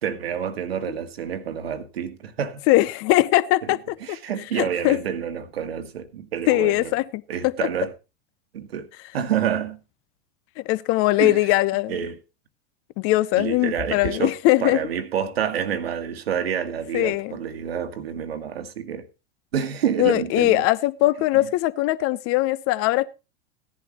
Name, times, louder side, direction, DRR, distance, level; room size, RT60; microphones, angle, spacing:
voice 1, 0.0-2.6 4.0-6.9 7.3-7.9 8.5-8.9 9.1-9.8 11.2-11.4 11.9-12.2 13.3-19.1 19.5-20.6, right 8 dB, 85° right, 1.7 m, -28 dB
voice 2, 2.7-4.2 4.5-5.0 6.5-7.5 10.6-12.1 13.0-14.8 16.9-17.4 20.0-23.1, left 17 dB, 45° left, 0.8 m, -21 dB
16.5 x 11.0 x 3.1 m
hypercardioid pair, 95°, 30 cm